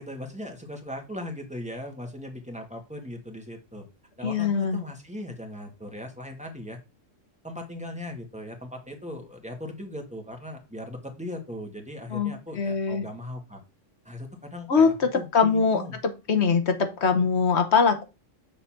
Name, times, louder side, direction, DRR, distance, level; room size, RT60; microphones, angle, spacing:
voice 1, 0.0-3.8 4.2-6.8 7.4-13.6 14.0-16.0, left 1 dB, 5° right, 2 dB, 1.6 m, -38 dB
voice 2, 4.2-4.8 12.1-13.1 14.7-15.8 16.3-18.0, left 5 dB, 60° left, 7 dB, 1.4 m, -22 dB
6.9 x 4.1 x 5.8 m, 0.28 s
omnidirectional pair, 1.3 m